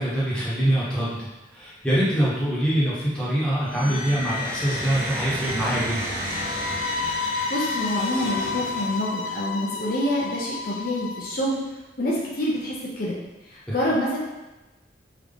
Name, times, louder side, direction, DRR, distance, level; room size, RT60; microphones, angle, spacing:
voice 1, 0.0-6.0 13.7-13.8, right 1 dB, 5° left, -9 dB, 1.1 m, -24 dB
sound 1, 3.6-9.3, equal, 50° right, 1.1 m, -32 dB
sound 2, 6.3-11.3, left 4 dB, 90° left, 0.3 m, -31 dB
voice 2, 7.5-11.6 12.0-13.2 13.5-14.2, left 1 dB, 50° left, -5 dB, 0.7 m, -27 dB
3.8 x 3.0 x 3.5 m, 1.1 s
head